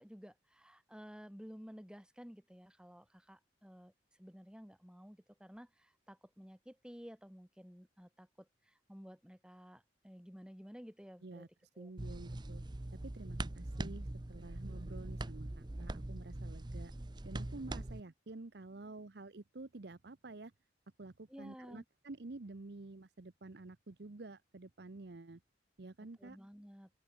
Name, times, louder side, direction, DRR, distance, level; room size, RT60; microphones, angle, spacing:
voice 1, 0.0-11.5 11.7-12.1 13.7-13.9 21.3-21.8 26.2-26.9, equal, 5° right, 2.5 m, -54 dB
voice 2, 11.8-12.6 13.0-16.9 17.2-20.5 21.0-25.4 25.8-26.4, right 2 dB, 60° right, 0.8 m, -50 dB
sound 1, 12.0-18.0, right 1 dB, 25° right, 0.7 m, -42 dB
open air
head